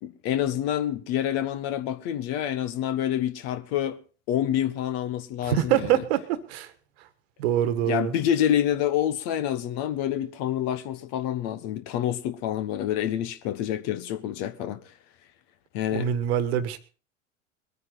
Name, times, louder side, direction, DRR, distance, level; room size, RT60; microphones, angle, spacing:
voice 1, 0.0-4.0 4.3-6.0 7.8-14.8 15.7-16.1, left 11 dB, 45° left, 1.3 m, -27 dB
voice 2, 5.4-6.7 7.4-8.1 15.9-16.8, right 11 dB, 55° right, 1.5 m, -25 dB
22.5 x 9.4 x 4.0 m
figure-of-eight pair, 80°, 38 cm